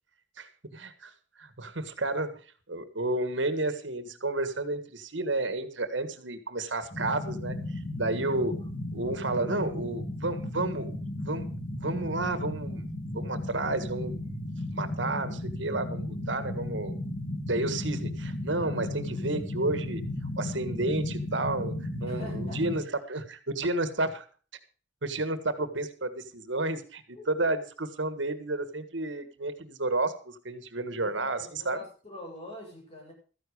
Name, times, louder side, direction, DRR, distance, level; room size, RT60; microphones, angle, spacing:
voice 1, 0.4-1.1 1.4-2.4 2.7-7.6 7.9-8.6 8.9-11.5 11.8-14.4 14.7-16.9 17.4-20.0 20.4-21.7 22.0-24.2 25.0-31.8, right 2 dB, 80° right, 11 dB, 1.7 m, -31 dB
sound 1, 6.9-22.8, left 1 dB, 50° left, 3.4 m, -35 dB
voice 2, 22.0-22.6 27.1-27.3 31.0-33.1, equal, 30° left, -1 dB, 6.9 m, -44 dB
14.0 x 10.5 x 4.9 m, 0.39 s
head